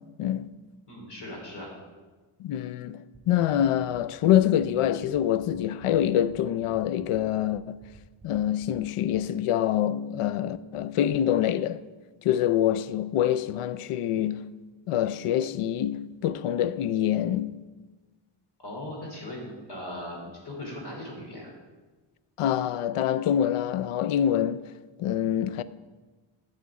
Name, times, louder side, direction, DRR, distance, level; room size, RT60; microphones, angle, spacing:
voice 1, 0.9-1.7 18.6-21.5, left 1 dB, 50° left, 3.3 m, -39 dB
voice 2, 2.4-7.8 8.2-11.8 12.2-14.5 14.9-17.6 22.4-24.6 25.0-25.6, left 11 dB, 90° left, 0.6 m, -25 dB
sound 1, 3.1-9.2, right 3 dB, 10° right, 2.8 m, -52 dB
12.0 x 6.5 x 4.7 m
wide cardioid pair, 165°, 50 cm